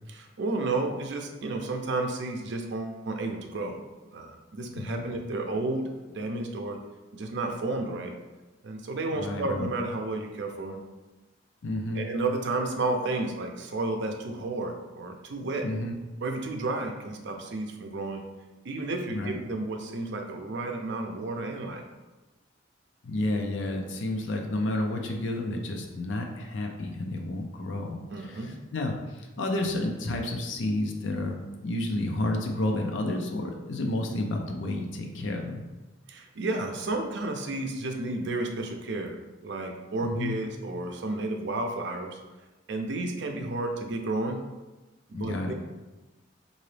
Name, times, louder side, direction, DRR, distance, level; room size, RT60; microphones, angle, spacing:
voice 1, 0.1-3.8 4.1-6.8 7.1-8.1 8.6-10.8 11.9-15.7 16.2-18.2 18.6-21.8 28.1-28.6 36.1-39.2 39.4-42.2 42.7-44.4 45.1-45.5, right 2 dB, 65° right, 3 dB, 0.5 m, -32 dB
voice 2, 4.7-5.0 9.1-9.7 11.6-12.0 15.6-15.9 19.1-19.4 23.0-35.6 40.0-40.3 45.1-45.5, left 1 dB, 75° left, 3 dB, 0.5 m, -31 dB
3.8 x 2.6 x 3.2 m, 1.1 s
head